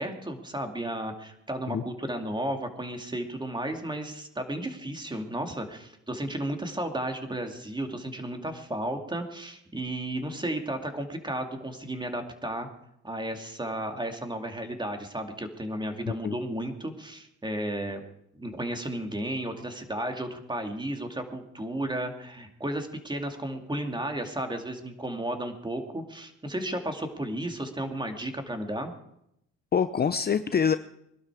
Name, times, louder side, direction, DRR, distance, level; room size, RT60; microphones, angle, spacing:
voice 1, 0.0-12.7 13.0-18.0 18.3-28.9, right 1 dB, 15° right, 5 dB, 2.5 m, -33 dB
voice 2, 29.7-30.8, left 7 dB, 30° left, 11 dB, 0.6 m, -25 dB
21.5 x 12.0 x 4.9 m, 0.77 s
cardioid pair, 90°, 30 cm